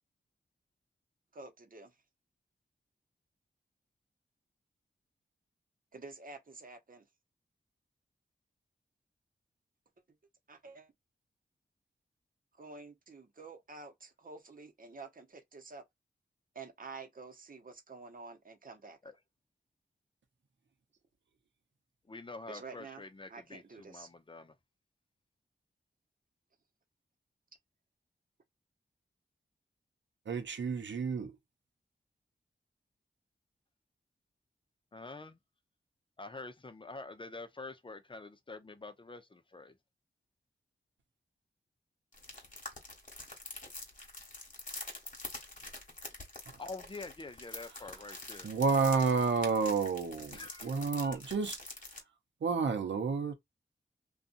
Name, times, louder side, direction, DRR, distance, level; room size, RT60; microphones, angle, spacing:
voice 1, 1.3-1.9 5.9-7.1 10.5-10.9 12.6-15.8 16.5-19.0 22.5-23.0 23.3-24.1, right 3 dB, 45° right, 0.9 m, -49 dB
voice 2, 22.0-24.5 34.9-35.4 36.2-39.8 46.6-48.5 50.3-51.2, left 3 dB, 25° left, 0.7 m, -47 dB
voice 3, 30.3-31.3 48.4-51.6 52.4-53.3, right 5 dB, 75° right, 0.8 m, -30 dB
sound 1, 42.1-52.0, left 2 dB, 40° left, 1.3 m, -46 dB
2.6 x 2.4 x 2.5 m
cardioid pair, 45°, 20 cm